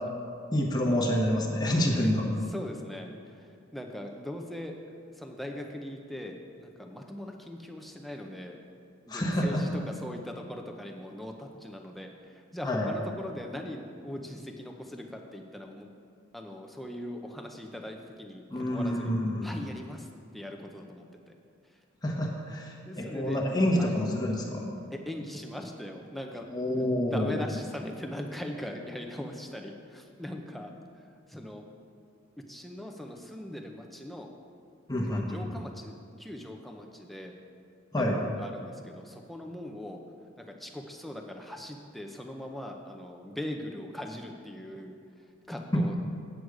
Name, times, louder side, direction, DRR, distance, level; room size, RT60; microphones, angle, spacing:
voice 1, 0.5-2.4 9.1-9.8 12.6-12.9 18.5-19.6 22.0-24.7 26.5-27.3 34.9-35.5 37.9-38.2 45.7-45.9, left 1 dB, 20° left, -2 dB, 1.1 m, -28 dB
voice 2, 2.5-3.1 3.7-4.7 5.2-8.6 9.1-9.7 10.0-12.1 12.5-15.9 16.3-19.1 19.4-20.1 20.3-21.1 22.8-23.4 23.8-23.9 25.1-26.5 27.1-30.7 31.3-31.6 32.5-34.3 35.1-35.9 36.2-37.3 38.0-40.0 40.4-44.9 45.5-46.0, left 1 dB, ahead, 2 dB, 0.6 m, -40 dB
8.0 x 7.9 x 4.8 m, 2.4 s
head